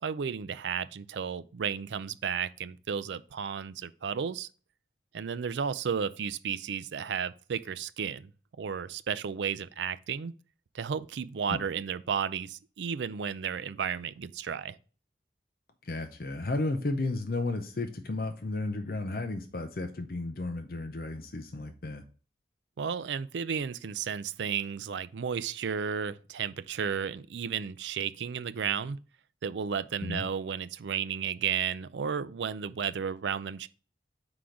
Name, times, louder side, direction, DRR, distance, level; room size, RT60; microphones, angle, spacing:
voice 1, 0.0-4.5 5.1-8.3 8.6-10.3 10.7-14.8 22.8-29.0 29.4-33.7, right 7 dB, 80° right, 0.4 m, -33 dB
voice 2, 15.8-22.0 30.1-30.2, left 2 dB, 55° left, 0.6 m, -33 dB
4.9 x 3.9 x 5.8 m
head